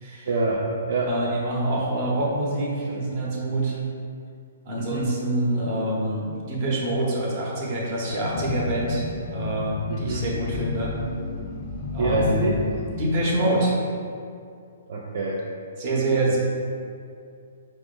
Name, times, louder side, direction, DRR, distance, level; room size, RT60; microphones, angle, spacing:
voice 1, 0.2-1.1 4.8-5.1 9.9-10.3 12.0-12.6 14.9-15.4, right 3 dB, 60° right, -3 dB, 0.4 m, -26 dB
voice 2, 1.1-3.8 4.6-10.9 11.9-12.5 13.0-13.8 15.8-16.4, right 1 dB, 40° right, -3 dB, 0.9 m, -26 dB
sound 1, 8.0-13.1, left 4 dB, 45° left, 0.3 m, -32 dB
4.6 x 2.0 x 3.7 m, 2.3 s
hypercardioid pair, 145°, 0 cm